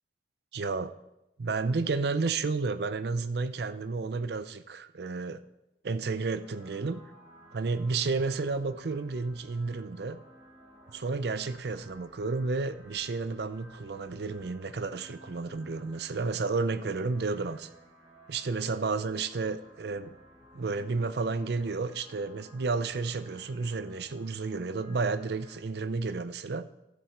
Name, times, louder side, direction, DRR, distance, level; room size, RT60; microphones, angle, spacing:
voice 1, 0.5-0.9 1.4-5.4 5.8-7.0 7.5-10.2 10.9-17.7 18.3-20.1 20.5-26.6, right 4 dB, 65° right, 13 dB, 0.5 m, -31 dB
sound 1, 6.4-25.6, equal, 35° right, 4.1 m, -56 dB
12.5 x 7.3 x 4.5 m, 0.91 s
head